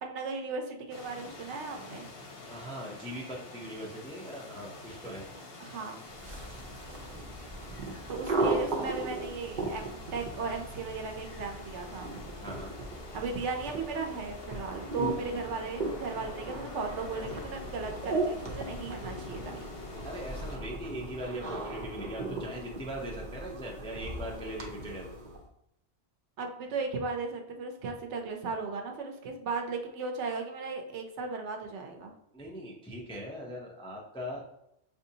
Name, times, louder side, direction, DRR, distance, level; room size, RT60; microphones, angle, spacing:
voice 1, 0.0-2.1 5.6-6.0 8.1-12.1 13.1-19.6 26.4-32.1, right 4 dB, 70° right, 3 dB, 0.9 m, -36 dB
sound 1, 0.9-20.6, left 3 dB, 55° left, 0.9 m, -47 dB
voice 2, 2.5-5.3 12.4-12.8 20.0-25.2 32.3-34.4, equal, 5° left, -2 dB, 0.4 m, -40 dB
sound 2, 6.1-25.4, right 2 dB, 45° right, 0.7 m, -37 dB
5.8 x 2.6 x 2.7 m, 0.80 s
omnidirectional pair, 1.3 m